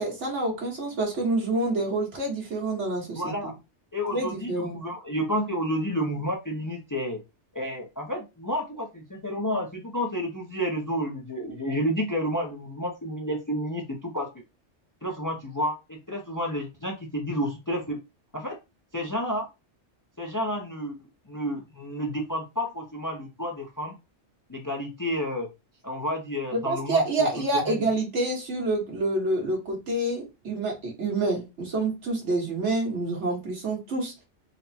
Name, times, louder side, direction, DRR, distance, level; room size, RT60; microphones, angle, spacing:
voice 1, 0.0-3.3 4.1-4.8 26.5-34.1, right 2 dB, 80° right, -1 dB, 1.7 m, -27 dB
voice 2, 3.1-3.5 3.9-7.2 7.5-14.3 15.0-18.0 18.3-18.6 18.9-19.5 20.2-21.0 21.3-24.0 24.5-25.5 25.8-27.3 27.5-27.8, equal, 25° left, 2 dB, 0.4 m, -30 dB
4.0 x 2.1 x 4.1 m, 0.26 s
omnidirectional pair, 1.2 m